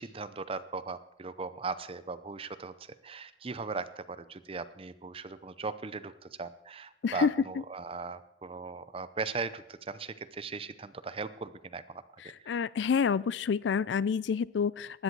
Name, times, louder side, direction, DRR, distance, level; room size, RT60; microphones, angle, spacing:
voice 1, 0.0-12.0 12.4-12.6, right 4 dB, 30° right, 13 dB, 0.6 m, -38 dB
voice 2, 12.5-15.0, left 6 dB, 90° left, 21 dB, 0.4 m, -28 dB
16.0 x 10.5 x 4.7 m, 0.80 s
head